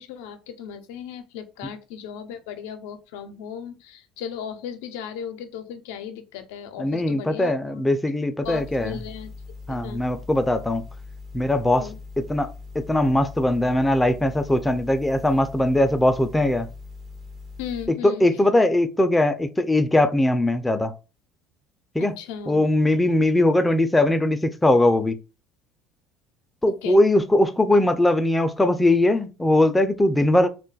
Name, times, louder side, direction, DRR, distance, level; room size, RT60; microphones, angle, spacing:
voice 1, 0.0-7.5 8.4-9.3 9.7-10.0 11.8-12.0 17.6-18.3 22.0-22.6 26.6-27.0, left 8 dB, 80° left, 0.5 m, -36 dB
voice 2, 6.8-9.0 9.7-10.8 11.3-11.9 12.2-16.7 17.9-20.9 21.9-22.1 22.5-25.2 26.6-30.5, left 1 dB, 10° left, 0.4 m, -20 dB
sound 1, 8.4-17.9, left 3 dB, 50° right, 0.8 m, -41 dB
2.3 x 2.1 x 3.9 m
supercardioid pair, 90°, 0 cm